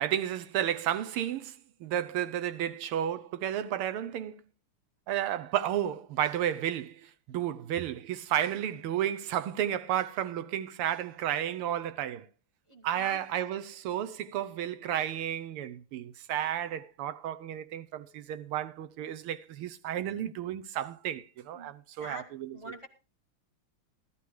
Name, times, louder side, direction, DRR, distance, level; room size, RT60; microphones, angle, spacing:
voice 1, 0.0-4.4 5.1-12.3 12.8-22.6, right 11 dB, 90° right, 1.7 m, -32 dB
voice 2, 12.7-13.5 21.5-21.7 22.0-22.2 22.5-22.9, left 1 dB, 35° right, 0.5 m, -45 dB
16.0 x 11.5 x 3.1 m
omnidirectional pair, 2.4 m